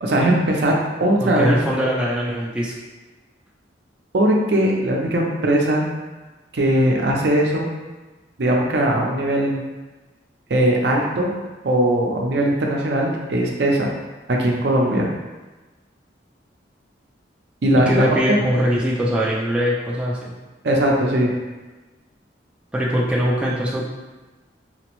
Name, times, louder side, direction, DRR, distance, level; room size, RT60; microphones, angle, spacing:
voice 1, 0.0-1.6 4.1-5.9 6.5-7.7 8.4-9.6 10.5-11.3 11.6-13.9 14.3-15.1 17.6-18.1 20.6-21.3, right 1 dB, 65° right, -1 dB, 0.5 m, -19 dB
voice 2, 1.2-2.8 17.8-20.3 22.7-23.8, equal, 5° right, -6 dB, 0.3 m, -22 dB
4.2 x 2.0 x 2.9 m, 1.2 s
head